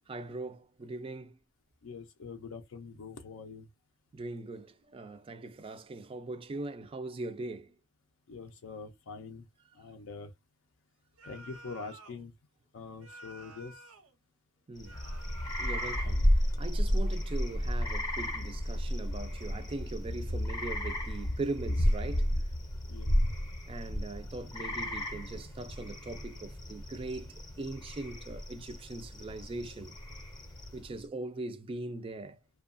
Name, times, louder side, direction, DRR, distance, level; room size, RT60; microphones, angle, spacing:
voice 1, 0.1-1.4 4.1-7.7 14.7-15.0 15.6-22.3 23.7-29.9 30.7-32.4, right 2 dB, 25° right, 0.3 m, -40 dB
voice 2, 1.8-3.7 8.3-9.5 9.8-10.3 11.2-12.3 12.7-13.8 22.9-23.2, left 4 dB, 65° left, 0.4 m, -44 dB
sound 1, 11.2-12.2 13.0-14.1 14.8-16.2, right 2 dB, 85° right, 0.7 m, -50 dB
sound 2, 14.8-31.0, equal, 20° left, 0.6 m, -32 dB
2.7 x 2.2 x 2.4 m
head